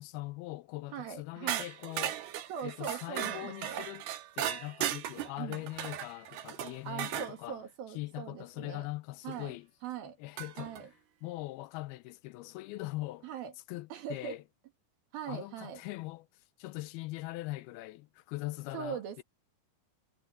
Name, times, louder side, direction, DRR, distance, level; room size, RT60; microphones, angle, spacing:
voice 1, 0.0-2.2 2.6-4.1 4.4-7.6 8.0-9.7 10.2-10.8 11.2-13.3 13.7-14.4 15.3-16.3 16.6-19.2, left 19 dB, 85° left, 2.6 m, -41 dB
voice 2, 0.9-1.7 2.5-3.9 5.4-5.6 6.9-8.9 9.2-9.6 9.8-10.2 10.6-10.9 13.2-13.5 13.9-14.4 15.1-15.8 18.7-19.2, right 8 dB, 75° right, 3.7 m, -41 dB
sound 1, 1.5-7.3 9.3-9.4 10.4-10.8, right 11 dB, 90° right, 3.4 m, -37 dB
omnidirectional pair, 4.4 m